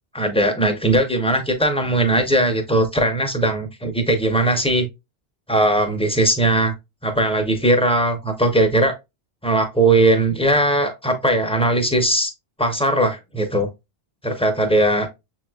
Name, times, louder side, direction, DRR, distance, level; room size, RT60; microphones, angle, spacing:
voice 1, 0.1-4.9 5.5-6.7 7.0-8.9 9.4-12.3 12.6-13.7 14.2-15.1, right 1 dB, 5° left, 0.6 m, -19 dB
6.8 x 3.0 x 2.2 m
omnidirectional pair, 1.1 m